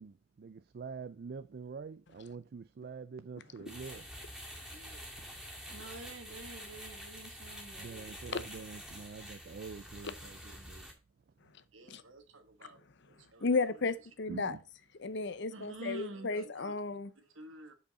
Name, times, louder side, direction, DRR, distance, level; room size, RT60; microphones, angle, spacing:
voice 1, 0.0-4.0 5.2-5.3 7.8-10.9 14.3-14.6, right 5 dB, 50° right, 0.4 m, -46 dB
sound 1, 3.7-10.9, equal, 5° right, 2.0 m, -47 dB
voice 2, 4.7-5.0 5.7-8.2 11.7-13.5 15.5-16.7 17.2-17.7, right 2 dB, 80° right, 1.5 m, -49 dB
voice 3, 13.4-14.5 15.0-17.1, left 4 dB, 60° left, 0.7 m, -33 dB
7.0 x 5.3 x 4.1 m
head